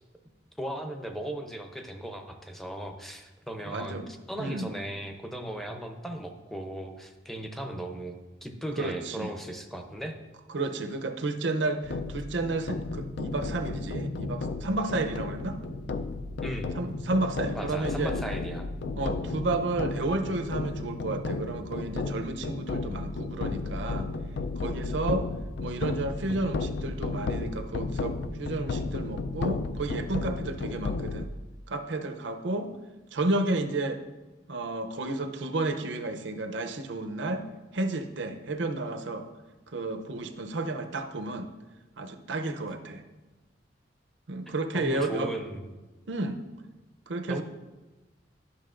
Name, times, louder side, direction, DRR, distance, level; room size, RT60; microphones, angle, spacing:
voice 1, 0.6-4.0 4.3-8.1 8.4-10.1 16.4-16.7 17.5-18.7 44.5-45.7 47.3-47.4, right 1 dB, ahead, 4 dB, 0.6 m, -37 dB
voice 2, 3.6-4.1 4.4-4.7 8.8-9.3 10.5-15.6 16.7-18.2 19.0-24.1 24.6-25.3 25.6-31.3 31.7-32.7 33.1-34.0 34.5-37.5 37.7-39.3 39.7-41.5 42.0-43.0 44.3-45.3 46.1-46.4 47.1-47.4, right 2 dB, 75° right, 7 dB, 0.6 m, -31 dB
sound 1, 11.8-31.3, left 3 dB, 65° left, 0.4 m, -33 dB
11.0 x 6.1 x 2.5 m, 1.1 s
head